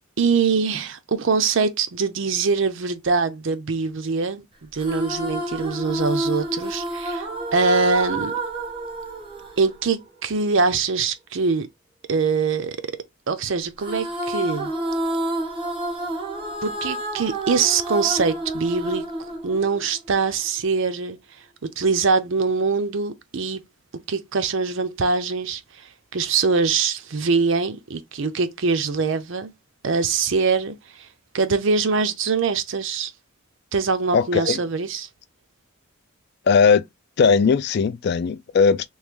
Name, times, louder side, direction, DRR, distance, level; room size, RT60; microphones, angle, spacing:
voice 1, 0.2-4.4 4.7-8.3 9.6-11.7 12.1-12.8 13.3-14.7 16.6-19.1 19.4-21.2 21.6-23.6 24.1-29.5 29.8-31.1 31.3-33.1 33.7-35.1, right 4 dB, 60° right, 0.6 m, -23 dB
sound 1, 4.8-10.3 13.8-20.2, right 1 dB, 25° right, 1.0 m, -29 dB
voice 2, 34.1-34.6 36.5-36.8 37.2-38.9, left 5 dB, 50° left, 0.3 m, -18 dB
3.1 x 2.4 x 3.6 m
head